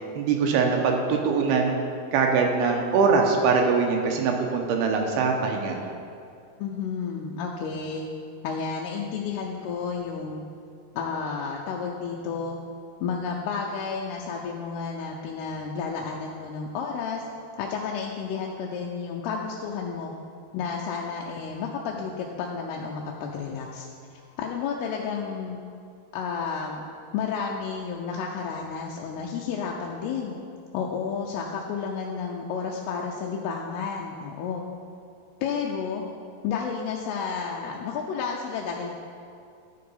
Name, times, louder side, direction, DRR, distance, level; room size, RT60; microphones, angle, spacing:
voice 1, 0.2-1.8 2.1-5.8, right 5 dB, 80° right, 2 dB, 2.8 m, -22 dB
voice 2, 6.6-8.1 8.4-10.4 10.9-12.6 13.0-17.2 17.6-20.1 20.5-23.9 24.1-25.6 26.1-26.8 27.1-30.4 30.7-34.6 35.4-36.0 36.4-38.9, left 6 dB, 85° left, -1 dB, 2.6 m, -31 dB
12.5 x 4.8 x 5.5 m, 2.4 s
omnidirectional pair, 4.6 m